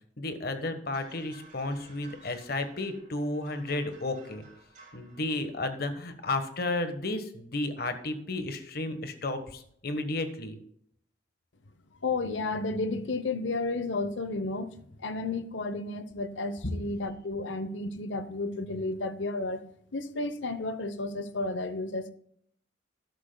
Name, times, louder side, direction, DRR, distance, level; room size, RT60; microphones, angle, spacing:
voice 1, 0.2-4.4 4.9-10.6, left 2 dB, 55° left, 1.3 m, -33 dB
sound 1, 0.9-6.2 6.5-6.9, right 3 dB, 40° right, 3.9 m, -56 dB
voice 2, 12.0-19.6 19.9-22.1, left 3 dB, 75° left, 0.8 m, -32 dB
13.0 x 11.0 x 2.2 m
head